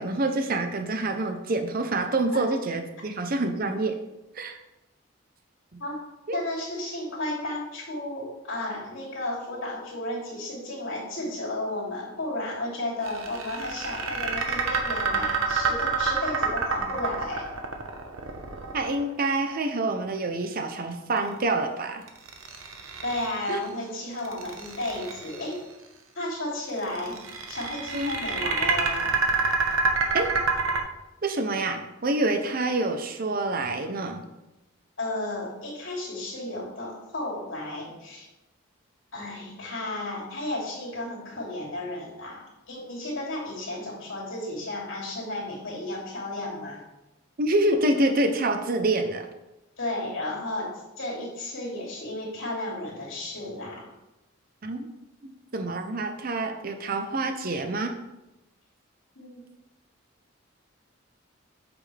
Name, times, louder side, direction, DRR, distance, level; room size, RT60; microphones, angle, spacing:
voice 1, 0.0-4.0 4.3-4.6 5.7-5.8 6.3-6.4 18.7-22.0 23.5-23.6 27.9-28.1 30.1-30.3 31.2-34.2 47.4-49.3 54.6-54.9 55.2-57.9, right 2 dB, 45° right, 6 dB, 0.7 m, -27 dB
voice 2, 6.3-17.5 23.0-25.6 26.1-27.1 27.5-29.1 35.0-38.3 39.1-42.4 42.7-46.8 49.8-50.7 51.0-53.9 59.1-59.4, left 1 dB, 70° left, -4 dB, 2.9 m, -33 dB
sound 1, 13.0-19.3 22.1-23.6 24.2-25.5 26.8-30.8, right 4 dB, 85° right, 1.0 m, -28 dB
8.2 x 6.2 x 3.4 m, 0.97 s
head